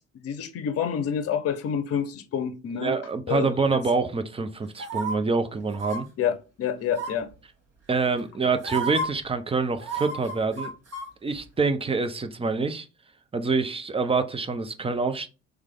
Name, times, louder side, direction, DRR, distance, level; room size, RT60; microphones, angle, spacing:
voice 1, 0.1-3.0 3.3-3.8 6.2-7.3, left 8 dB, 45° left, 0.8 m, -28 dB
voice 2, 2.8-6.1 7.9-10.7 11.2-12.9 13.3-15.3, right 4 dB, 15° right, 0.6 m, -26 dB
sound 1, 4.8-5.1 5.7-6.0 6.9-7.3 8.2-8.3 8.6-9.1 9.8-11.1 11.4-11.5, right 3 dB, 45° right, 1.7 m, -31 dB
3.2 x 3.2 x 3.7 m
figure-of-eight pair, 50°, 35 cm